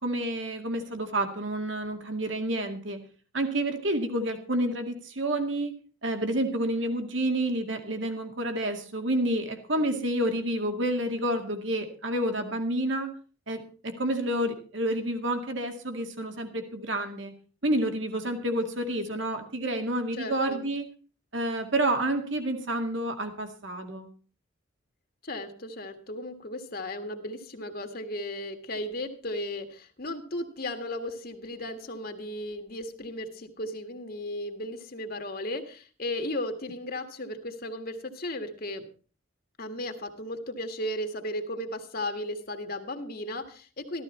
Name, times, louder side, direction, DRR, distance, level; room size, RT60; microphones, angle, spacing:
voice 1, 0.0-3.0 3.3-5.7 6.0-13.1 13.5-17.3 17.6-20.9 21.3-24.1, right 1 dB, 65° right, 5 dB, 2.2 m, -29 dB
voice 2, 20.1-20.6 25.2-38.9 39.6-44.0, left 1 dB, 50° left, 6 dB, 1.7 m, -35 dB
14.5 x 13.0 x 4.3 m, 0.38 s
head